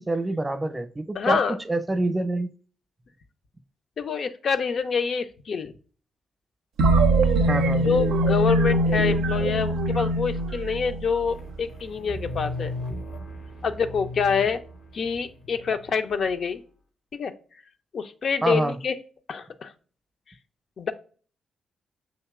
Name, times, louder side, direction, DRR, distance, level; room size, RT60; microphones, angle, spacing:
voice 1, 0.0-2.5 7.5-7.9 18.4-18.8, right 2 dB, 25° right, 6 dB, 0.7 m, -26 dB
voice 2, 1.2-1.6 4.0-5.7 7.8-12.7 13.6-14.6 14.9-16.6 17.1-17.3 17.9-18.9 19.3-19.7 20.8-20.9, left 5 dB, 60° left, 8 dB, 0.5 m, -26 dB
sound 1, 6.8-11.5, right 2 dB, 75° right, 0.5 m, -22 dB
sound 2, 11.2-16.2, left 1 dB, 75° left, 0.8 m, -37 dB
6.4 x 2.9 x 2.3 m, 0.41 s
hypercardioid pair, 40°, 0 cm